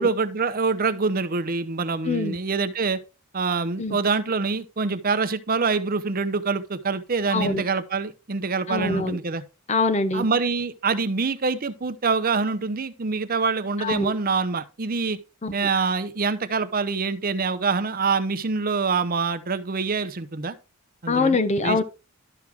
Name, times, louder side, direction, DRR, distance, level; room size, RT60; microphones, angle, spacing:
voice 1, 0.0-3.0 3.3-9.4 10.1-15.2 15.5-20.6 21.0-21.4 21.6-21.8, right 4 dB, 45° right, 0.7 m, -25 dB
voice 2, 2.0-2.4 3.8-4.0 7.3-7.6 8.7-9.2 9.7-10.3 13.8-14.1 15.4-15.5 21.1-21.8, left 3 dB, 35° left, 0.8 m, -24 dB
12.0 x 6.1 x 3.5 m
head